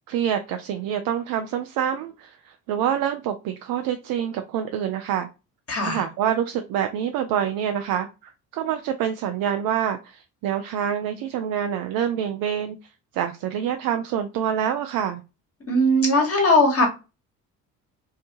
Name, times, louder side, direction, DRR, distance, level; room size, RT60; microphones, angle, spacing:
voice 1, 0.1-5.3 5.8-15.2, right 9 dB, 45° right, 7 dB, 0.5 m, -26 dB
voice 2, 5.7-6.0 15.7-16.9, left 1 dB, 30° left, 1 dB, 1.6 m, -19 dB
3.3 x 2.7 x 2.7 m, 0.29 s
figure-of-eight pair, 50°, 47 cm